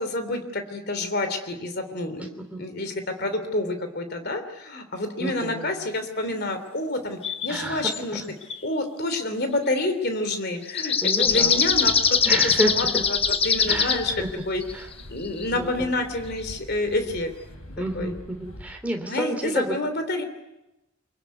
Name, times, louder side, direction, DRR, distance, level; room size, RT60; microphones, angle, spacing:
voice 1, 0.0-2.3 2.6-8.2 8.6-12.2 12.7-12.8 13.4-14.1 14.5-14.6 15.1-17.3 18.0-18.1 19.1-20.2, left 2 dB, 45° left, 8 dB, 3.2 m, -28 dB
voice 2, 2.2-2.6 5.2-5.7 7.5-7.8 8.1-8.3 11.0-11.6 12.2-13.1 13.7-14.3 14.7-14.9 15.5-15.9 17.8-19.8, right 1 dB, 5° right, 3 dB, 3.2 m, -30 dB
sound 1, 7.2-7.6 7.9-8.0 8.4-8.6 10.7-14.1 14.6-14.7 15.0-15.4 16.5-16.6, left 6 dB, 25° left, 1.0 m, -22 dB
sound 2, 11.2-18.7, equal, 75° left, 6.4 m, -43 dB
24.5 x 23.5 x 9.5 m, 0.98 s
head